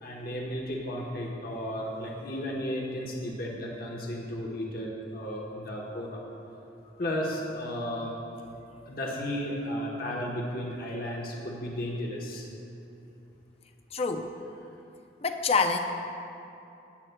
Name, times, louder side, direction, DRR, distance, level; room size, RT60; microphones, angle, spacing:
voice 1, 0.0-6.2 7.0-8.1 8.9-12.4, equal, 55° left, -2 dB, 1.0 m, -34 dB
voice 2, 13.9-14.3 15.2-15.8, left 4 dB, 35° left, 6 dB, 0.5 m, -26 dB
13.0 x 8.9 x 2.2 m, 2.8 s
head